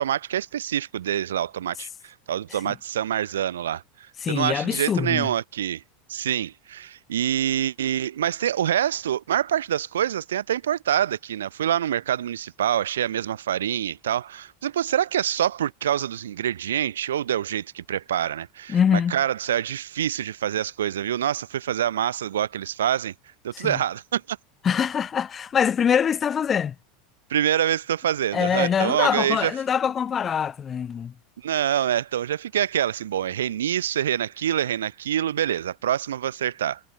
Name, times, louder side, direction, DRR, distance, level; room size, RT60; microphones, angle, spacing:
voice 1, 0.0-5.8 6.1-23.1 23.4-24.4 27.3-29.6 31.4-36.8, right 10 dB, 70° right, 0.7 m, -26 dB
voice 2, 4.2-5.3 18.7-19.2 23.5-23.8 24.6-26.7 28.3-31.1, left 7 dB, 25° left, 0.8 m, -24 dB
figure-of-eight pair, 80°, 0 cm